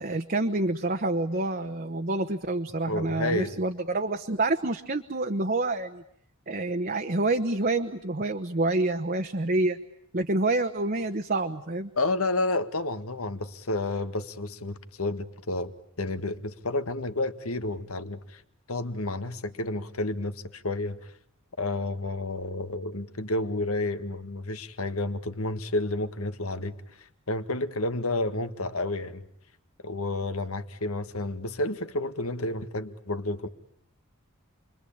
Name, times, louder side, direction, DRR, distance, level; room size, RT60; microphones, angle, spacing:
voice 1, 0.0-6.0 6.5-9.8 10.1-11.9, right 2 dB, 40° right, 1.1 m, -27 dB
voice 2, 2.9-3.6 12.0-15.7 16.0-18.4 18.7-21.1 21.6-29.3 29.8-33.5, left 2 dB, 80° left, 1.7 m, -30 dB
29.5 x 23.0 x 8.7 m
head